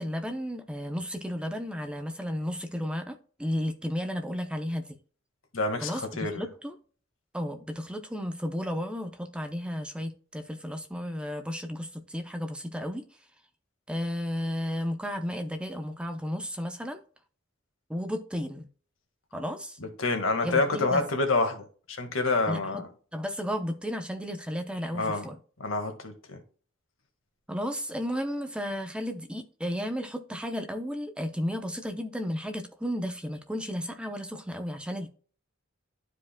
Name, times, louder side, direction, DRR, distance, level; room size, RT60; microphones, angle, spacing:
voice 1, 0.0-5.0 5.8-6.7 7.3-13.0 13.9-17.0 17.9-18.7 19.3-19.8 20.4-21.0 22.5-22.8 23.1-25.4 27.5-35.1, equal, 5° right, 0.7 m, -33 dB
voice 2, 5.5-6.4 19.8-22.9 24.9-25.3 25.6-26.4, left 3 dB, 75° left, 1.7 m, -28 dB
12.0 x 4.9 x 2.2 m
head